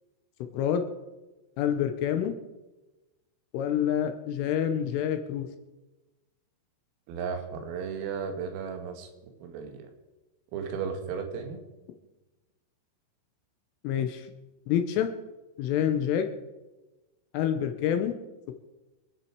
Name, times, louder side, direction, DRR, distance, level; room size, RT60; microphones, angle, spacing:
voice 1, 1.6-2.4 3.5-5.5 13.8-14.3 14.7-15.1 15.6-16.3 17.3-18.2, left 9 dB, 80° left, 7 dB, 3.5 m, -27 dB
voice 2, 7.1-9.1 9.4-9.9 10.5-11.6, right 6 dB, 85° right, 5 dB, 4.6 m, -34 dB
26.0 x 10.5 x 4.7 m, 1.1 s
omnidirectional pair, 5.8 m